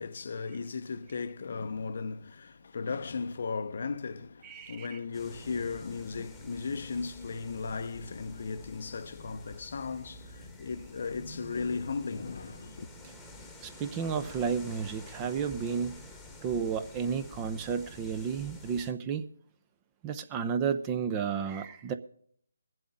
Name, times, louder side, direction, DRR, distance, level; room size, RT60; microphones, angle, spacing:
voice 1, 0.0-12.9, left 4 dB, 50° left, 0.7 m, -36 dB
voice 2, 4.4-5.0 13.6-15.9 16.4-19.2 20.0-21.9, right 6 dB, 20° right, 0.7 m, -32 dB
sound 1, 5.1-18.9, left 1 dB, 5° left, 1.4 m, -49 dB
23.0 x 7.8 x 3.7 m
figure-of-eight pair, 155°, 0 cm